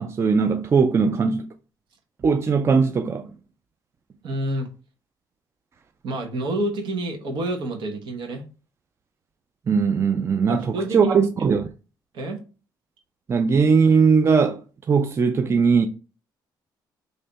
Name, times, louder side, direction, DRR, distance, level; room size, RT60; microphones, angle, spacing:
voice 1, 0.0-1.5 2.2-3.3 9.7-11.7 13.3-14.6 14.9-15.9, right 5 dB, 35° right, 0.4 m, -19 dB
voice 2, 4.2-4.7 6.0-8.4 10.5-11.2 12.1-12.4, right 1 dB, 75° right, 1.1 m, -28 dB
3.3 x 2.7 x 4.0 m
cardioid pair, 110°, 8 cm